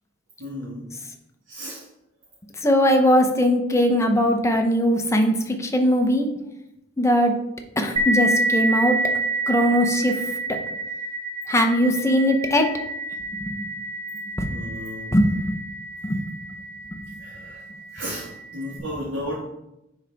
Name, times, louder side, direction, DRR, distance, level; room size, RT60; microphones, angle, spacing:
voice 1, 0.4-0.9 1.5-1.8 14.5-15.1 17.2-17.6 17.9-19.4, equal, 80° right, -6 dB, 1.4 m, -33 dB
voice 2, 2.6-5.3 5.6-6.3 7.0-7.3 7.8-9.0 9.5-10.1 11.5-12.6 13.4-13.7 14.4-14.5 15.1-15.3 16.0-16.2, equal, 15° left, 4 dB, 0.7 m, -20 dB
sound 1, 8.0-17.2, right 2 dB, 25° right, 1.1 m, -28 dB
9.6 x 3.8 x 3.4 m, 0.88 s
head